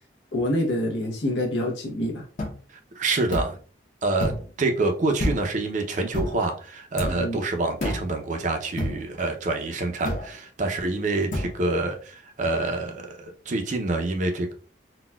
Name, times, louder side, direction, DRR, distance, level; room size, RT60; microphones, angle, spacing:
voice 1, 0.3-2.2 7.1-7.4, left 1 dB, 85° left, -1 dB, 0.8 m, -26 dB
sound 1, 2.4-2.6 3.3-3.6 4.2-4.5 5.2-5.6 6.1-6.4 7.0-7.3 7.8-8.1 8.8-9.1 10.0-10.4 11.3-11.5, left 1 dB, 45° left, 0.7 m, -28 dB
voice 2, 3.0-3.6 4.0-14.5, right 2 dB, 45° right, 4 dB, 0.5 m, -27 dB
4.0 x 2.2 x 2.2 m, 0.40 s
head